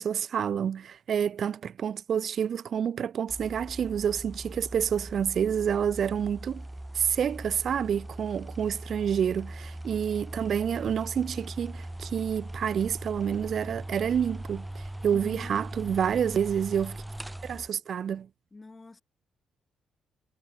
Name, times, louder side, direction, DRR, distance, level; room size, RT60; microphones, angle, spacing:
voice 1, 0.0-6.6 6.9-17.0 17.4-18.3, right 8 dB, 55° right, 0.5 m, -28 dB
sound 1, 3.3-17.7, right 1 dB, 10° right, 0.4 m, -40 dB
voice 2, 15.1-16.0 18.5-19.0, left 3 dB, 20° left, 0.9 m, -46 dB
cardioid pair, 90°, 0 cm